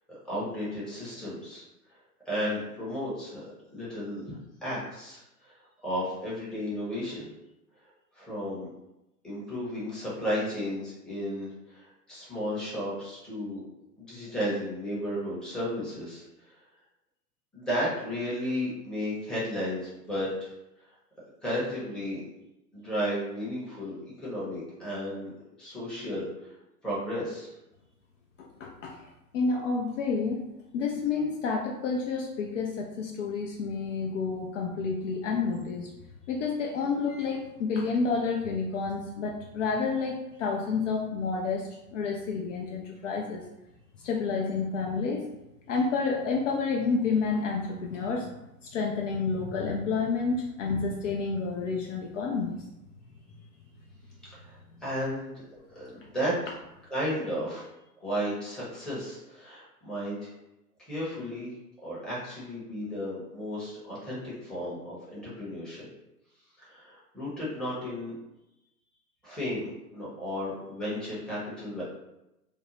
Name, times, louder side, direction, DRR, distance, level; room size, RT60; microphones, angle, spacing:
voice 1, 0.2-1.6 2.3-5.5 5.8-7.3 8.1-8.7 9.2-13.6 14.0-16.2 17.5-20.5 21.4-22.2 22.7-25.3 25.6-26.5 26.8-27.5 54.3-55.4 55.7-56.4 56.9-57.6 58.0-60.3 60.9-61.5 61.8-65.8 66.7-68.1 69.2-71.8, equal, ahead, -9 dB, 0.7 m, -33 dB
voice 2, 28.4-29.0 29.3-30.4 30.7-35.9 36.3-43.4 44.0-45.2 45.7-48.3 48.6-52.6, left 4 dB, 50° left, 0 dB, 0.5 m, -29 dB
2.6 x 2.0 x 2.9 m, 0.92 s
hypercardioid pair, 110°, 48 cm